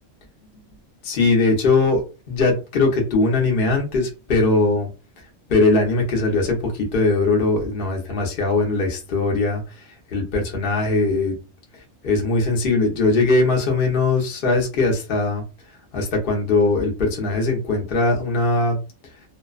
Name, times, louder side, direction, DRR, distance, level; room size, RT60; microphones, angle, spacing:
voice 1, 1.0-4.9 5.5-9.6 10.1-11.3 12.0-15.4 15.9-18.8, left 3 dB, 50° left, 1 dB, 0.8 m, -20 dB
2.6 x 2.1 x 2.3 m, 0.31 s
omnidirectional pair, 1.4 m